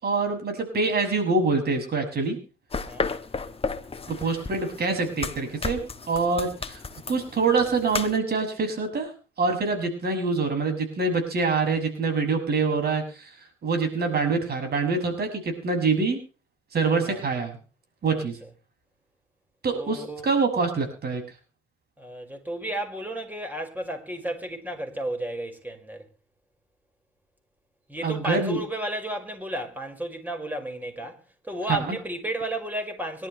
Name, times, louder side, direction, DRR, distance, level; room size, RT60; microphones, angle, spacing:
voice 1, 0.0-2.4 4.1-5.8 6.1-6.8 7.1-9.1 9.4-13.3 13.6-16.2 16.7-17.6 18.0-18.4 19.6-21.2 28.0-28.6 31.7-32.0, right 4 dB, 55° right, 6.9 m, -25 dB
sound 1, 2.7-8.2, left 4 dB, 30° left, 1.7 m, -34 dB
voice 2, 18.1-18.5 19.7-20.2 22.0-26.1 27.9-33.3, right 1 dB, 10° right, 5.6 m, -33 dB
24.5 x 12.5 x 3.4 m
cardioid pair, 90°, 20 cm